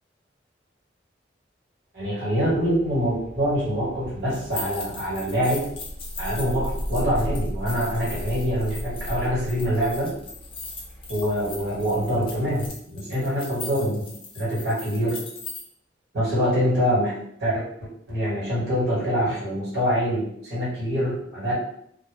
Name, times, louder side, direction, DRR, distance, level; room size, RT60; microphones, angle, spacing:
voice 1, 1.9-5.6 6.2-10.1 11.1-15.2 16.1-17.1 17.4-17.6 18.1-21.5, equal, 65° right, -7 dB, 1.4 m, -25 dB
sound 1, 2.4-12.7, equal, 40° right, 0.9 m, -36 dB
sound 2, 4.3-15.6, left 4 dB, 30° left, 0.6 m, -39 dB
2.2 x 2.2 x 3.3 m, 0.71 s
head